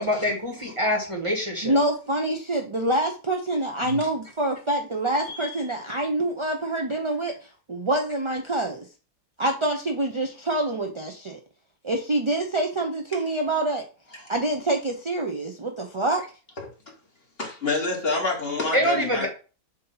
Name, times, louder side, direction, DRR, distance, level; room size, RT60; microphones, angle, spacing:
voice 1, 0.0-1.8 18.7-19.3, equal, 20° right, 1.4 m, -25 dB
voice 2, 1.6-8.9 9.4-11.4 11.8-13.8 14.3-16.2, right 1 dB, 40° right, 0.4 m, -26 dB
voice 3, 5.3-5.6 13.1-13.2 14.2-14.3 16.6-16.7 17.4-19.3, left 3 dB, 40° left, 1.9 m, -28 dB
7.3 x 2.8 x 5.6 m
omnidirectional pair, 1.6 m